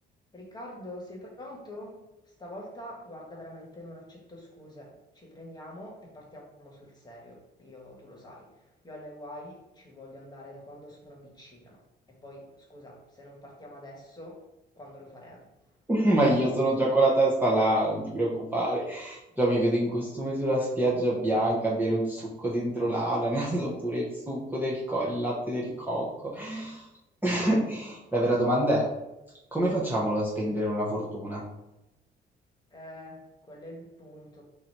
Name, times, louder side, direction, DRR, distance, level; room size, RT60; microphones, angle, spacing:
voice 1, 0.3-2.0 2.2-11.8 12.1-14.4 14.8-15.5 32.7-34.4, left 1 dB, 20° left, -1 dB, 1.5 m, -45 dB
voice 2, 15.9-26.9 27.2-28.8 29.5-31.4, right 1 dB, 10° right, -6 dB, 0.9 m, -26 dB
3.9 x 2.8 x 4.5 m, 0.94 s
cardioid pair, 90°, 20 cm